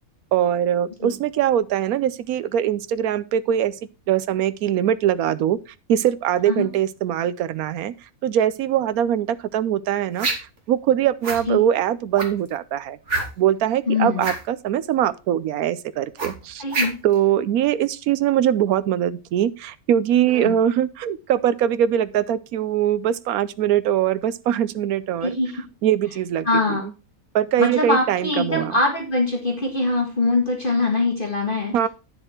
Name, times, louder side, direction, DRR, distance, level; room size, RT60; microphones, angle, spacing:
voice 1, 0.3-3.7 4.1-5.6 5.9-7.9 8.2-10.3 10.7-13.0 13.4-16.6 17.0-25.4 25.8-26.8 27.3-28.7 31.7-31.9, right 10 dB, 80° right, 1.1 m, -22 dB
sound 1, 10.2-10.6 11.2-11.4 12.1-12.5 13.1-13.5 14.2-14.4 16.2-17.2, right 2 dB, 50° right, 2.3 m, -26 dB
voice 2, 13.9-14.3 16.6-16.9 20.3-20.5 25.2-25.5 26.4-26.9 27.6-31.9, left 2 dB, 35° left, 1.9 m, -23 dB
9.8 x 6.7 x 4.3 m
omnidirectional pair, 1.6 m